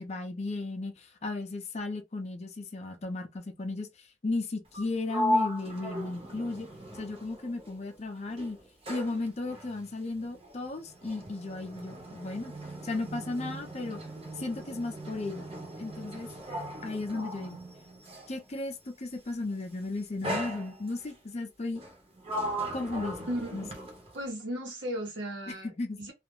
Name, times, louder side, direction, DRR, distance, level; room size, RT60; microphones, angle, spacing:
voice 1, 0.0-6.7 6.9-8.6 8.9-12.5 12.8-14.0 14.4-15.5 15.8-16.3 16.8-17.6 18.3-21.8 22.7-23.7 25.5-26.0, left 2 dB, 35° left, 0.5 m, -35 dB
Sliding door, 4.7-8.0 8.3-18.4 19.3-19.6 20.2-21.2 21.7-24.3, equal, 30° right, 0.8 m, -37 dB
voice 2, 23.3-23.7 24.1-25.7 26.0-26.1, equal, 90° right, 0.9 m, -35 dB
2.4 x 2.1 x 3.0 m
head